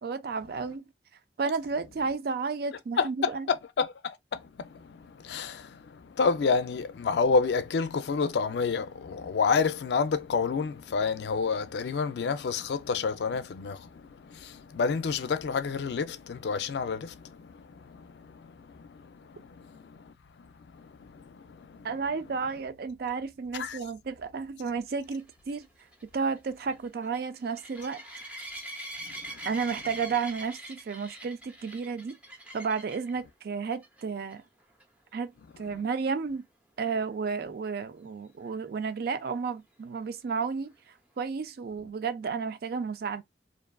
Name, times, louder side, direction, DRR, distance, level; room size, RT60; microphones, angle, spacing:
voice 1, 0.0-0.8 1.4-3.5 21.8-25.7 26.1-28.0 29.4-32.2 32.5-34.4 35.1-35.3 35.6-36.4 36.8-40.7 41.2-43.2, right 5 dB, 60° right, 0.4 m, -32 dB
voice 2, 3.0-21.9 23.5-23.8 28.5-28.7 29.0-29.4 35.7-35.9, left 5 dB, 70° left, 0.4 m, -30 dB
sound 1, 25.2-33.1 33.7-34.0 34.3-34.4 34.8-34.9 38.5-38.6, right 1 dB, 5° right, 0.6 m, -43 dB
2.5 x 2.4 x 2.2 m
head